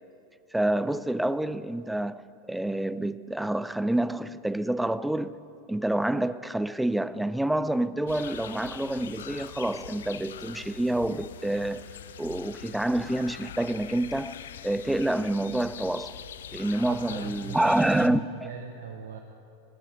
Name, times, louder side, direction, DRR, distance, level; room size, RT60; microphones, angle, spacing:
voice 1, 0.5-5.4 5.7-11.9 12.2-16.2 16.5-18.5, right 1 dB, 5° right, 0.3 m, -28 dB
sound 1, 8.1-18.1, left 9 dB, 60° left, 0.4 m, -43 dB
voice 2, 16.9-19.2, right 6 dB, 65° right, 0.8 m, -40 dB
17.5 x 7.2 x 6.5 m
figure-of-eight pair, 90°, 0 cm